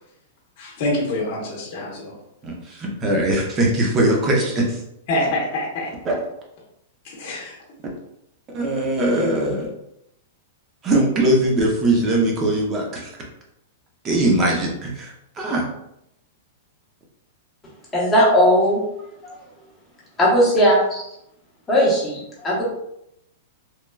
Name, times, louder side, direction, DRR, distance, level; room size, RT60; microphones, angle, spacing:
voice 1, 0.6-2.1 5.1-5.9 7.0-7.6, left 1 dB, 40° left, -4 dB, 0.8 m, -25 dB
voice 2, 2.4-4.8 6.0-6.1 8.5-9.7 10.8-13.1 14.0-15.7, right 1 dB, 20° right, -1 dB, 0.5 m, -21 dB
voice 3, 17.9-18.8 19.2-19.3 20.2-21.0 21.7-22.6, equal, 10° left, -6 dB, 0.8 m, -17 dB
3.1 x 2.3 x 2.2 m, 0.79 s
supercardioid pair, 165°, 0 cm